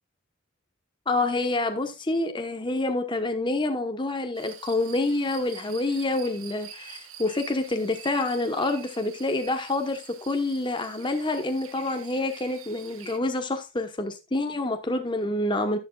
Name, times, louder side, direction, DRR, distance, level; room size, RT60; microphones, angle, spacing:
voice 1, 1.1-15.8, left 2 dB, 20° left, 1.0 m, -27 dB
sound 1, 4.3-13.2, right 8 dB, 80° right, 1.5 m, -46 dB
11.0 x 11.0 x 2.3 m
head